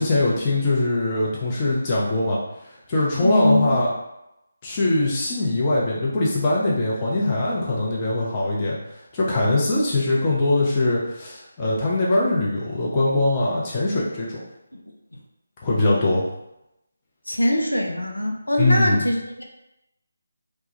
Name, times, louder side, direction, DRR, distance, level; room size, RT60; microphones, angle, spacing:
voice 1, 0.0-2.4 2.6-3.9 4.6-8.8 9.1-14.4 15.6-16.2 18.6-19.1, left 2 dB, 25° left, -6 dB, 0.5 m, -22 dB
voice 2, 3.2-3.7 17.3-19.4, left 1 dB, 85° left, 1 dB, 0.4 m, -22 dB
2.2 x 2.1 x 2.8 m, 0.88 s
figure-of-eight pair, 155°, 0 cm